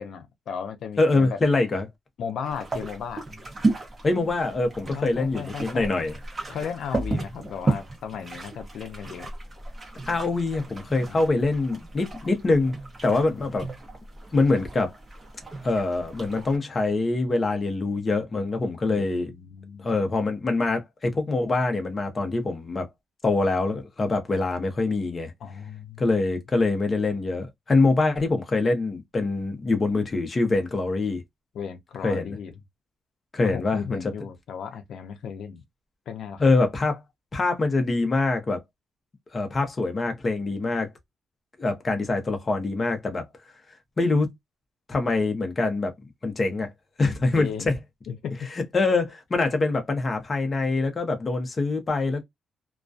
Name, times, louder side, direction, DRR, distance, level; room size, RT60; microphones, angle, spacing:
voice 1, 0.0-1.4 2.2-3.2 4.9-5.9 6.5-9.3 11.1-11.4 13.1-13.6 18.9-19.9 25.4-26.0 31.5-32.5 33.4-35.6 36.1-36.4 47.4-47.8 48.1-48.5, left 7 dB, 70° left, 0.5 m, -35 dB
voice 2, 1.0-1.8 4.0-6.1 10.1-12.8 13.0-13.6 14.3-14.9 15.6-19.3 19.8-22.9 23.2-25.3 26.0-31.2 32.0-32.4 33.3-34.0 36.4-37.0 37.3-38.6 39.3-40.9 41.6-43.2 44.0-44.3 44.9-45.9 46.2-46.7 47.0-47.7 48.5-52.2, left 3 dB, 25° left, 0.6 m, -24 dB
sound 1, 2.4-16.6, right 2 dB, 25° right, 0.8 m, -34 dB
2.3 x 2.2 x 2.5 m
wide cardioid pair, 160°, 0 cm